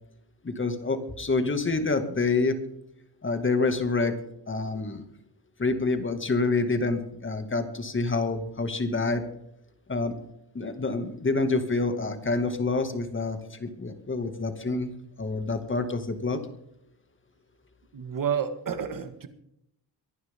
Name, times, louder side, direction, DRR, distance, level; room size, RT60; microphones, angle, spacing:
voice 1, 0.4-2.6 3.2-4.1 4.5-5.0 5.6-9.2 9.9-10.2 10.5-14.9 15.2-16.4, left 3 dB, 30° left, 7 dB, 2.2 m, -27 dB
voice 2, 17.9-19.3, right 7 dB, 50° right, 9 dB, 2.0 m, -30 dB
24.0 x 11.0 x 3.8 m, 0.77 s
wide cardioid pair, 120°, 41 cm